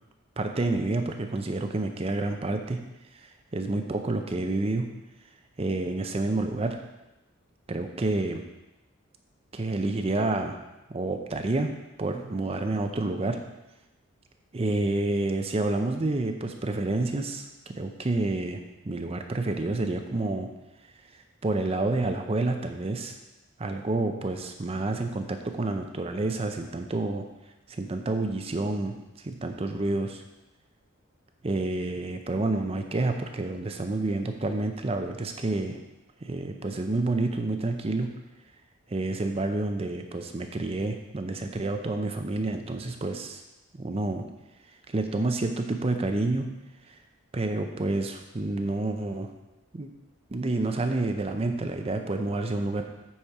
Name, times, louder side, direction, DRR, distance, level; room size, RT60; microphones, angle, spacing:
voice 1, 0.4-2.8 3.5-4.8 5.6-6.8 7.7-8.4 9.5-10.6 10.9-11.7 12.0-13.4 14.5-17.4 17.7-20.5 21.4-23.2 23.6-27.3 27.7-29.0 29.2-30.2 31.4-35.8 36.2-38.1 38.9-43.4 43.7-44.2 44.9-46.5 46.9-47.0 47.3-49.3 49.7-49.9 50.3-52.8, right 2 dB, 30° right, 5 dB, 0.5 m, -29 dB
8.6 x 4.3 x 4.7 m, 0.97 s
head